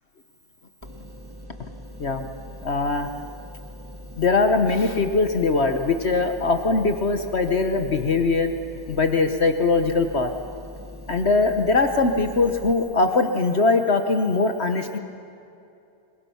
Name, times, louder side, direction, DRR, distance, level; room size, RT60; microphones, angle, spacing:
sound 1, 0.8-12.7, equal, 15° right, 1.1 m, -42 dB
voice 1, 2.6-3.1 4.2-8.5 8.9-10.3 11.1-15.0, left 3 dB, 45° left, 7 dB, 1.0 m, -21 dB
25.5 x 22.5 x 5.8 m, 2.6 s
omnidirectional pair, 2.2 m